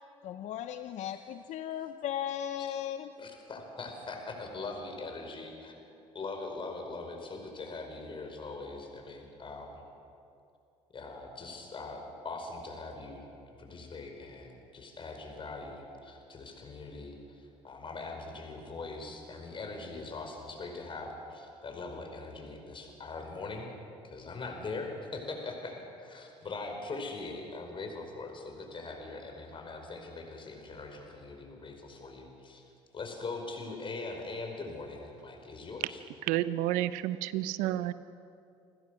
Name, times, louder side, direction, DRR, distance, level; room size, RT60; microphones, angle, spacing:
voice 1, 0.2-3.1, left 10 dB, 60° left, 10 dB, 0.8 m, -36 dB
voice 2, 3.2-5.8 6.1-9.8 10.9-13.3 13.6-23.7 24.0-32.6 32.9-36.0, left 3 dB, 40° left, 3 dB, 5.1 m, -41 dB
voice 3, 36.2-37.9, right 14 dB, 80° right, 15 dB, 0.8 m, -30 dB
28.5 x 15.5 x 6.4 m, 2.6 s
supercardioid pair, 70°, 13 cm